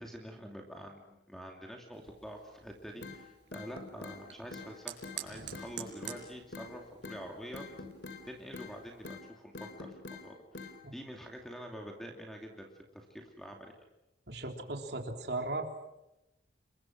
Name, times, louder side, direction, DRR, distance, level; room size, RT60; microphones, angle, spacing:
voice 1, 0.0-7.6 8.2-13.7, equal, ahead, 1 dB, 2.7 m, -46 dB
Fire, 1.9-9.2, right 10 dB, 90° right, 5.6 m, -50 dB
sound 1, 3.0-3.2 3.5-4.2 4.5-4.7 5.0-5.2 5.5-6.2 6.5-6.7 7.0-7.2 7.5-8.2 8.5-8.7 9.0-9.2 9.5-10.2 10.5-10.7, left 3 dB, 65° left, 3.7 m, -44 dB
voice 2, 14.3-15.7, right 2 dB, 60° right, 4 dB, 3.6 m, -37 dB
29.5 x 23.0 x 6.2 m, 0.92 s
head